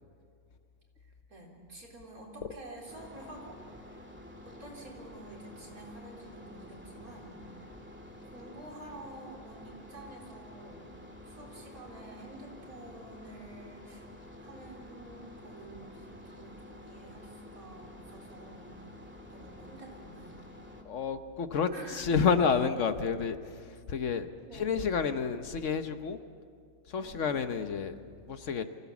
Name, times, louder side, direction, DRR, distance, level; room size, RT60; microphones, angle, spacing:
voice 1, 1.3-4.1 4.4-7.7 8.1-10.9 11.2-14.1 14.4-18.8 19.3-20.4 21.7-22.2 24.4-24.7 27.0-27.2, right 2 dB, 90° right, -2 dB, 4.3 m, -49 dB
sound 1, 2.9-20.8, left 1 dB, 10° right, 2.0 m, -50 dB
voice 2, 20.8-24.3 24.5-26.2 26.9-28.0 28.3-28.6, left 6 dB, 60° left, 9 dB, 1.2 m, -30 dB
25.0 x 16.0 x 7.2 m, 2.2 s
omnidirectional pair, 1.5 m